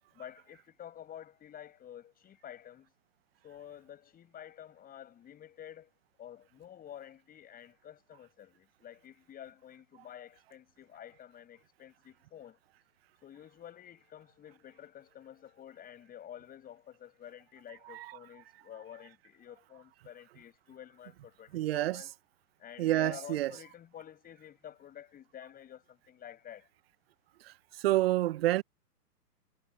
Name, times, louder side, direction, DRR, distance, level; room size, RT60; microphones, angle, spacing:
voice 1, 0.1-2.9 3.4-5.9 6.2-12.6 13.2-22.1 22.6-26.7, left 10 dB, 20° left, 7.0 m, -50 dB
voice 2, 21.5-22.0 22.8-23.5 27.8-28.6, right 15 dB, 40° right, 0.7 m, -27 dB
hypercardioid pair, 135°, 48 cm